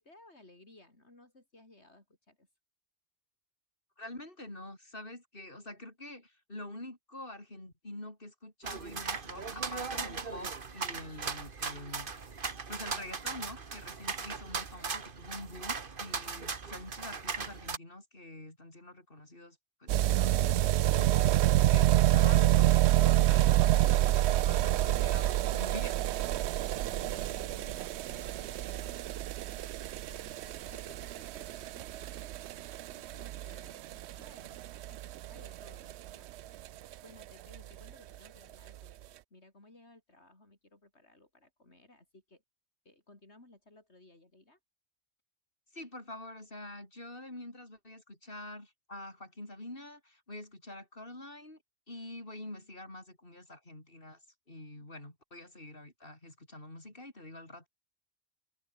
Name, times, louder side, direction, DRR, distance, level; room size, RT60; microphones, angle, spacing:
voice 1, 0.0-2.5 26.9-34.6 34.9-36.3 37.0-42.4 42.8-44.6 54.8-54.9, left 2 dB, 70° left, 5.3 m, -58 dB
voice 2, 4.0-12.1 12.7-21.3 21.7-26.0 45.7-51.6 51.9-54.2 54.5-57.7, left 1 dB, 50° left, 5.8 m, -46 dB
sound 1, 8.6-17.8, right 5 dB, 50° right, 1.6 m, -38 dB
sound 2, 19.9-36.7 36.9-37.0 37.2-37.3 37.5-37.6 37.9-38.0 38.7-38.8, right 13 dB, 75° right, 0.8 m, -28 dB
omnidirectional pair, 1.2 m